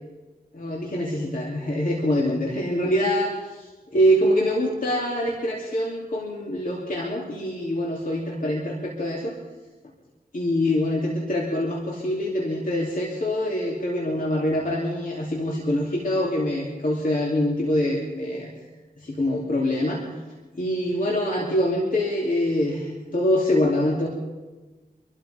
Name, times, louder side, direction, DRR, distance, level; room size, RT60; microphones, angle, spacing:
voice 1, 0.5-9.4 10.3-18.5 19.0-20.1 20.5-24.1, left 1 dB, 50° left, -3 dB, 3.0 m, -24 dB
26.5 x 13.0 x 3.6 m, 1.2 s
cardioid pair, 55°, 18 cm